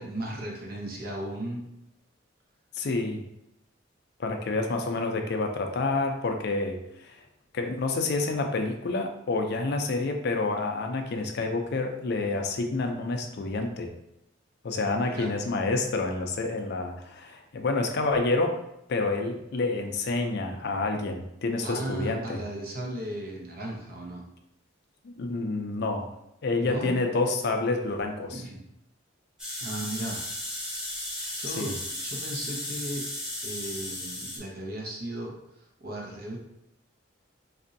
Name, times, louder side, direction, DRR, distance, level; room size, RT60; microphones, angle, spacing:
voice 1, 0.0-1.7 15.1-15.3 21.6-24.2 26.6-27.0 28.3-28.6 29.6-30.2 31.3-33.1 33.4-35.4 35.8-36.4, right 1 dB, 50° right, -1 dB, 0.8 m, -36 dB
voice 2, 2.7-3.2 4.2-7.2 7.5-13.9 14.6-18.6 18.9-22.4 25.0-26.1 26.4-28.4 31.2-31.8, left 3 dB, 55° left, 4 dB, 0.4 m, -28 dB
sound 1, 29.4-34.4, left 1 dB, 5° right, 0.9 m, -35 dB
4.1 x 2.6 x 2.6 m, 0.82 s
head